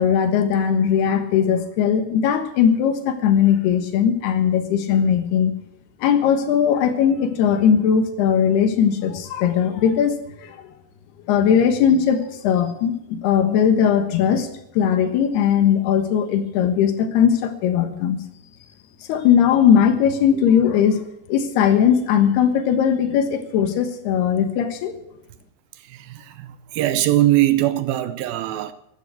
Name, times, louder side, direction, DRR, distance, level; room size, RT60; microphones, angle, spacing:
voice 1, 0.0-5.5 6.0-10.6 11.3-14.5 14.7-18.2 19.1-21.0 21.3-24.9, left 8 dB, 75° left, 3.3 m, -19 dB
voice 2, 25.8-28.7, right 14 dB, 80° right, 2.2 m, -21 dB
13.5 x 11.5 x 7.8 m
omnidirectional pair, 4.9 m